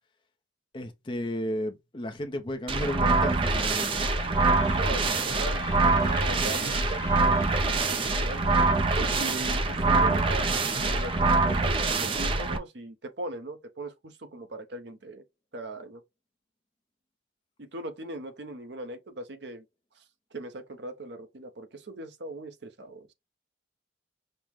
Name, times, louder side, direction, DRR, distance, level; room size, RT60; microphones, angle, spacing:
voice 1, 0.7-4.0, equal, 25° left, 0.5 m, -33 dB
sound 1, 2.7-12.6, right 3 dB, 25° right, 0.4 m, -24 dB
Trumpet, 3.3-12.2, left 6 dB, 65° left, 0.7 m, -44 dB
voice 2, 4.7-8.4 8.9-15.2 15.5-16.0 17.6-19.6 19.9-20.0 20.3-23.1, right 2 dB, 65° right, 0.7 m, -40 dB
5.3 x 2.0 x 3.1 m
head